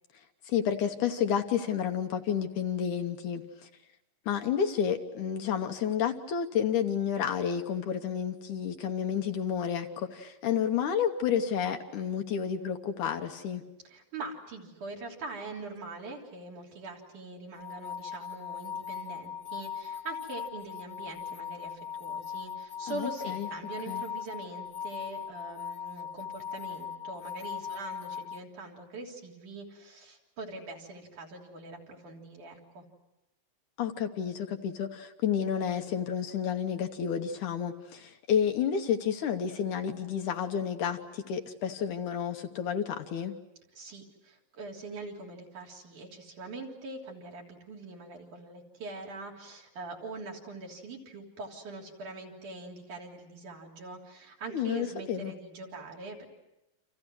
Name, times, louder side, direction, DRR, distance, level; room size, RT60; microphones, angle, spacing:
voice 1, 0.5-3.7 4.3-13.6 22.9-23.5 23.9-24.1 33.8-43.3 54.5-55.3, left 8 dB, 65° left, 5 dB, 2.4 m, -30 dB
voice 2, 13.8-32.8 43.7-56.3, right 3 dB, 60° right, -1 dB, 4.9 m, -43 dB
sound 1, 17.6-28.4, left 8 dB, 85° left, 1.1 m, -39 dB
29.0 x 27.5 x 6.2 m, 0.92 s
omnidirectional pair, 4.1 m